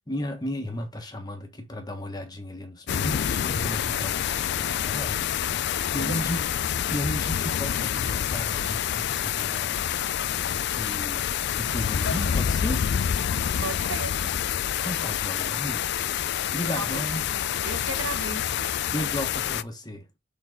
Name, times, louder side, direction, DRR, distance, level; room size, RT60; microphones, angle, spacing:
voice 1, 0.1-5.2 5.6-6.5 6.9-9.8 10.2-11.3 11.5-12.9 14.8-16.0 16.5-17.3 18.9-20.1, equal, 20° left, 1.3 m, -34 dB
sound 1, 2.9-19.6, left 9 dB, 55° left, 0.4 m, -27 dB
voice 2, 13.6-14.1 16.7-17.0 17.6-18.7, right 3 dB, 90° right, 1.1 m, -34 dB
6.3 x 4.1 x 3.6 m
head